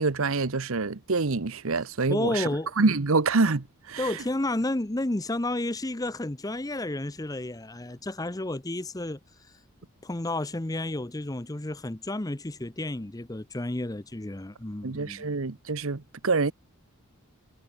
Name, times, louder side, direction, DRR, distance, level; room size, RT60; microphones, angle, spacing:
voice 1, 0.0-2.5 2.8-4.1 14.8-16.5, right 3 dB, 70° right, 1.0 m, -26 dB
voice 2, 2.1-2.7 4.0-9.6 10.0-15.2, left 1 dB, 15° left, 0.7 m, -31 dB
head